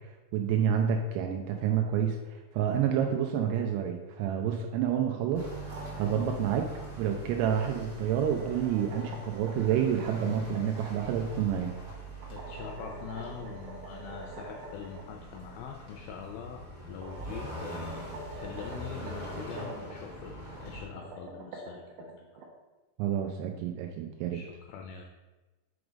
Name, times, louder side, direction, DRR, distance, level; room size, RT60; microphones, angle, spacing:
voice 1, 0.3-5.5 5.9-6.7 7.0-11.7 23.0-24.4, right 8 dB, 85° right, 3 dB, 2.6 m, -29 dB
sound 1, 5.3-20.8, right 2 dB, 35° right, 1.6 m, -43 dB
sound 2, 5.5-6.6 7.8-10.6 12.2-15.0 15.3-15.4 16.5-16.6 17.0-19.9 20.8-22.5, right 2 dB, 70° right, 2.2 m, -45 dB
voice 2, 12.3-16.6 16.9-21.8 22.1-22.2 24.3-25.0, left 7 dB, 80° left, 2 dB, 2.3 m, -43 dB
6.2 x 4.7 x 5.0 m, 1.1 s
omnidirectional pair, 4.7 m